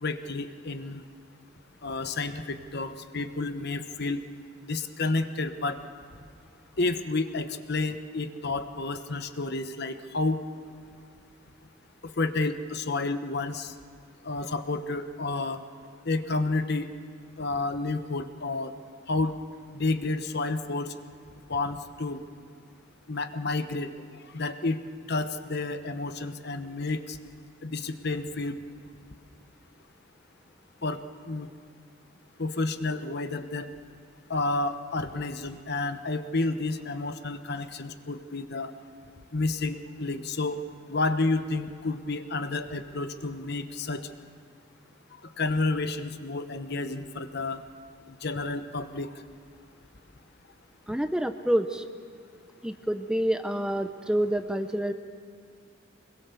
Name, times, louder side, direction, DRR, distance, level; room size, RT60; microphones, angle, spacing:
voice 1, 0.0-1.0 1.8-4.2 4.6-5.8 6.8-10.4 12.0-13.7 14.2-15.6 16.0-16.9 17.4-18.7 19.1-19.3 19.7-20.9 21.5-22.2 23.1-23.9 24.3-24.8 25.1-27.2 27.6-28.5 30.8-31.5 32.4-33.7 34.3-38.7 39.3-40.6 40.9-44.1 45.4-47.6 48.1-49.1, left 3 dB, 55° left, 9 dB, 1.1 m, -30 dB
voice 2, 50.9-51.8 52.6-54.9, right 1 dB, 5° right, 8 dB, 0.7 m, -27 dB
25.0 x 21.5 x 6.9 m, 2.3 s
head